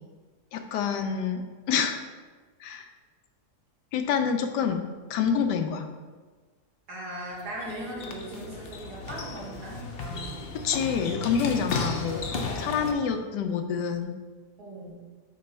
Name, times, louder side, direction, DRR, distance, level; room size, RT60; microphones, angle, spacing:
voice 1, 0.5-1.4 1.7-2.0 2.6-2.9 3.9-4.8 5.1-5.9 10.6-12.3 12.6-14.1, left 7 dB, 90° left, 6 dB, 1.3 m, -27 dB
voice 2, 6.9-10.4 12.7-13.0 14.6-15.0, right 1 dB, 70° right, -5 dB, 2.4 m, -39 dB
sound 1, 7.3-12.9, left 3 dB, 60° left, 0.6 m, -34 dB
7.7 x 3.1 x 5.5 m, 1.4 s
omnidirectional pair, 1.8 m